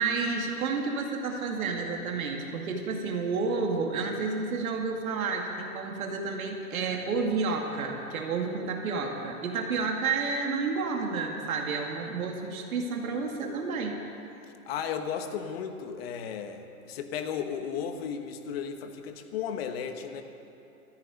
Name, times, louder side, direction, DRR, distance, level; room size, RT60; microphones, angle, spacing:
voice 1, 0.0-14.0, right 4 dB, 65° right, 1 dB, 2.3 m, -30 dB
voice 2, 14.7-20.2, left 7 dB, 40° left, 7 dB, 1.4 m, -34 dB
14.0 x 11.5 x 9.2 m, 2.7 s
hypercardioid pair, 155°, 44 cm